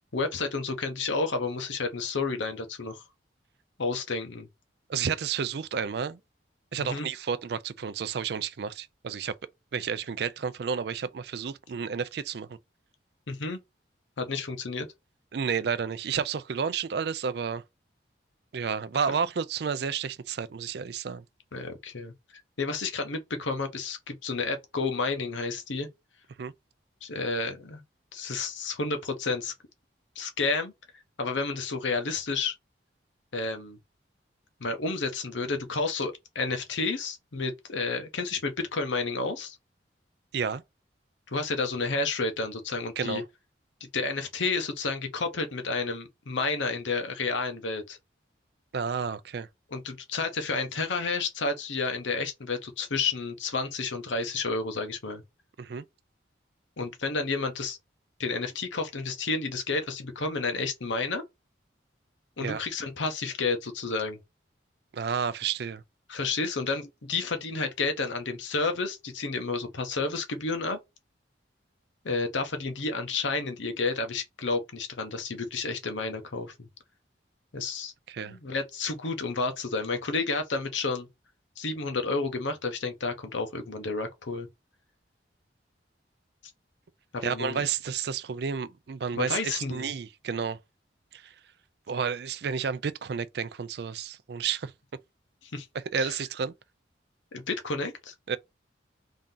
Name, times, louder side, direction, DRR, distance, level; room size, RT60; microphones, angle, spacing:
voice 1, 0.1-3.0 3.8-4.5 6.8-7.1 13.3-13.6 14.2-14.9 21.5-22.1 22.6-25.9 27.0-27.8 28.1-29.5 30.2-30.7 31.2-32.5 33.3-33.8 34.6-39.6 41.3-43.2 43.9-48.0 49.7-55.2 56.8-57.8 58.2-61.2 62.4-64.2 66.1-70.8 72.0-76.7 77.5-77.9 78.2-81.1 81.6-84.5 87.1-87.6 89.1-89.9 95.5-95.7 96.0-96.2 97.3-98.1, left 3 dB, 80° left, 0.9 m, -31 dB
voice 2, 4.9-6.2 6.7-9.3 9.7-12.6 15.3-17.6 18.5-21.2 26.4-26.5 40.3-40.6 43.0-43.2 48.7-49.5 55.6-55.8 62.4-62.6 64.9-65.8 78.1-78.4 87.2-90.6 91.1-91.3 91.9-94.7 95.7-96.5 98.3-98.4, right 6 dB, 60° right, 0.4 m, -31 dB
3.6 x 2.7 x 3.8 m
head